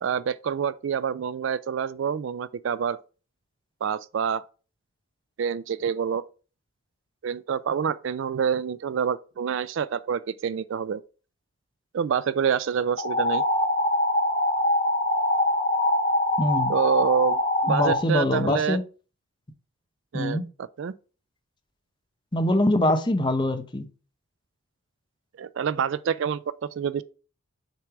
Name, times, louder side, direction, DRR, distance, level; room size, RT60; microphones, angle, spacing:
voice 1, 0.0-3.0 3.8-4.4 5.4-6.2 7.2-11.0 11.9-13.4 16.7-18.8 20.1-20.4 20.8-20.9 25.4-27.0, right 7 dB, 60° right, 0.3 m, -27 dB
sound 1, 13.0-18.0, left 1 dB, 55° left, 1.9 m, -23 dB
voice 2, 16.4-16.7 17.7-18.8 20.1-20.4 22.3-23.9, left 1 dB, 20° left, 0.8 m, -23 dB
6.7 x 3.3 x 5.8 m
head